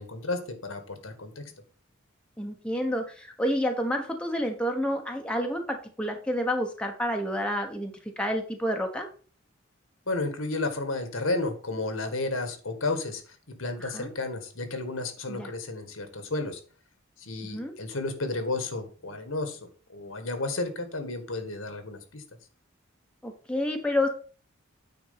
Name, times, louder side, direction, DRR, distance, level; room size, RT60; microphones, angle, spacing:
voice 1, 0.0-1.4 10.1-13.2 13.5-16.6 17.3-22.2, left 2 dB, 80° left, 7 dB, 1.7 m, -32 dB
voice 2, 2.4-9.1 13.8-14.1 15.3-15.5 17.4-17.7 23.2-24.1, equal, 5° left, 2 dB, 1.1 m, -29 dB
9.3 x 4.4 x 5.9 m, 0.40 s
head